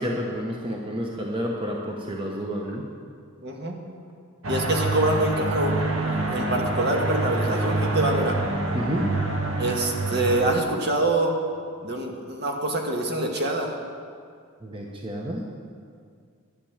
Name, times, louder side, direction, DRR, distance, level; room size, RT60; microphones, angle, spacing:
voice 1, 0.0-2.8 8.7-9.0 14.6-15.5, equal, 25° right, -1 dB, 1.2 m, -30 dB
voice 2, 3.4-3.8 4.5-8.4 9.6-11.3 11.8-13.7, right 2 dB, 50° right, 1 dB, 1.7 m, -25 dB
sound 1, 4.4-10.6, right 2 dB, 70° right, 1.5 m, -26 dB
12.5 x 10.5 x 7.3 m, 2.2 s
head